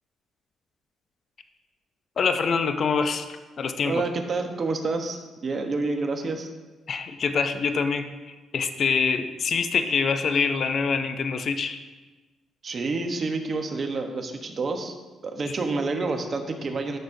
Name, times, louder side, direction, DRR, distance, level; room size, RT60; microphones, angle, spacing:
voice 1, 2.2-3.3 3.6-4.0 6.9-11.8 15.5-15.6, left 5 dB, 55° left, 8 dB, 0.6 m, -25 dB
voice 2, 3.9-6.5 12.6-14.9 15.2-17.0, right 3 dB, 45° right, 5 dB, 1.0 m, -28 dB
13.0 x 6.0 x 2.7 m, 1.2 s
cardioid pair, 90°, 0 cm